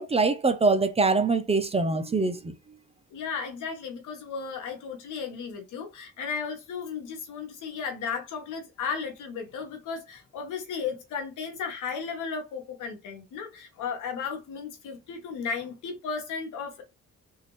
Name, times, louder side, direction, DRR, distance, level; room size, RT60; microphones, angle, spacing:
voice 1, 0.0-2.5, right 3 dB, 20° right, 0.5 m, -24 dB
voice 2, 3.1-16.8, left 6 dB, 85° left, 1.3 m, -35 dB
3.6 x 2.5 x 3.1 m
cardioid pair, 90°, 30 cm